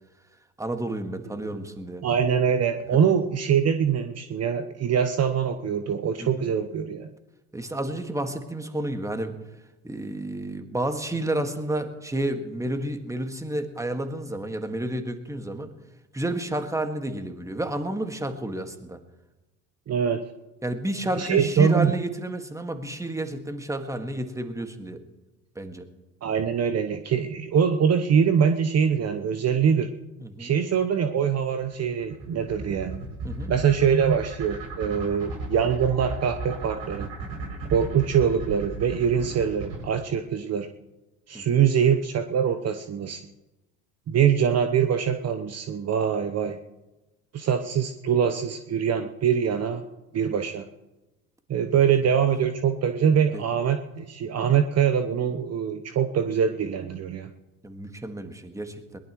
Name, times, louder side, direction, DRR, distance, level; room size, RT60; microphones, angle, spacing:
voice 1, 0.6-2.0 2.9-3.0 6.2-6.5 7.5-9.3 9.8-15.7 16.1-19.0 20.6-25.0 25.6-25.9 30.2-30.5 33.2-33.5 41.3-41.6 53.3-53.4 57.6-59.0, right 1 dB, 5° right, 6 dB, 1.8 m, -31 dB
voice 2, 2.0-7.1 19.9-20.2 21.2-21.9 26.2-29.9 30.4-33.0 33.5-37.1 37.7-40.7 41.3-43.2 44.1-46.6 47.3-49.8 50.1-50.6 51.5-57.3, right 7 dB, 35° right, 8 dB, 1.0 m, -23 dB
sound 1, 31.6-39.8, right 3 dB, 60° right, 7.0 m, -35 dB
21.5 x 18.5 x 3.1 m, 1.0 s
hypercardioid pair, 70°, 42 cm